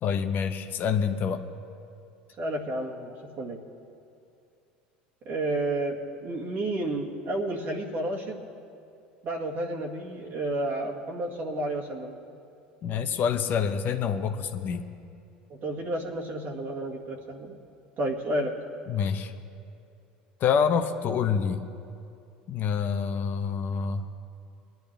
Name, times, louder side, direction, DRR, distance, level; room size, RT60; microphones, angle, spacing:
voice 1, 0.0-1.4 12.8-14.9 18.9-19.3 20.4-21.6 22.5-24.1, left 6 dB, 45° left, 7 dB, 0.8 m, -27 dB
voice 2, 2.4-3.6 5.3-8.5 9.2-12.2 15.5-17.6 18.0-18.5, right 1 dB, 50° right, 0 dB, 2.0 m, -31 dB
21.0 x 10.5 x 3.4 m, 2.6 s
hypercardioid pair, 80°, 4 cm